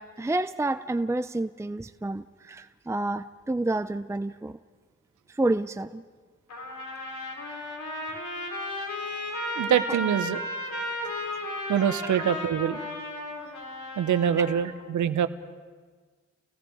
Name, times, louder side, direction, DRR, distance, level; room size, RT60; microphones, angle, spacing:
voice 1, 0.0-4.6 5.4-6.0, right 2 dB, 10° right, 11 dB, 0.7 m, -29 dB
Trumpet, 6.5-14.7, left 1 dB, 65° left, 5.2 m, -34 dB
voice 2, 9.6-10.4 11.7-12.8 14.0-15.3, right 9 dB, 70° right, 12 dB, 1.2 m, -24 dB
30.0 x 18.0 x 4.8 m, 1.5 s
hypercardioid pair, 45°, 31 cm